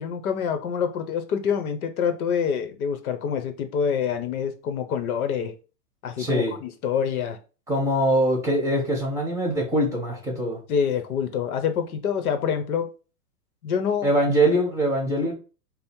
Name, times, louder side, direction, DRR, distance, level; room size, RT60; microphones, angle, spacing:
voice 1, 0.0-5.5 6.0-7.4 10.7-12.9 13.6-14.1, left 7 dB, 65° left, 8 dB, 0.9 m, -26 dB
voice 2, 6.2-6.5 7.7-10.6 14.0-15.3, right 1 dB, 5° right, 0 dB, 1.3 m, -23 dB
5.2 x 2.0 x 4.4 m, 0.34 s
hypercardioid pair, 145°, 47 cm